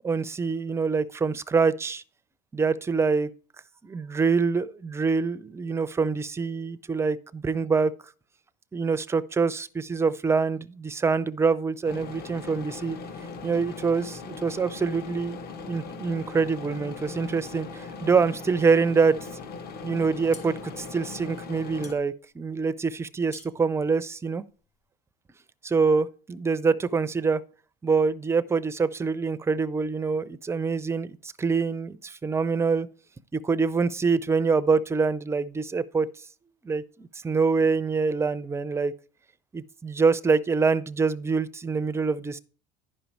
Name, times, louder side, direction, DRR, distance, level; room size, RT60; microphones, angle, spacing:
voice 1, 0.0-2.0 2.5-3.3 3.8-7.9 8.7-13.0 13.4-15.4 15.7-19.2 19.8-24.4 25.6-27.4 27.8-32.9 33.3-36.1 36.6-38.9 39.5-42.4, right 4 dB, 15° right, 0.4 m, -25 dB
sound 1, 11.8-21.9, left 4 dB, 50° left, 1.2 m, -39 dB
sound 2, 20.3-24.9, left 3 dB, 30° left, 2.3 m, -51 dB
11.0 x 5.2 x 4.5 m
cardioid pair, 125°, 21 cm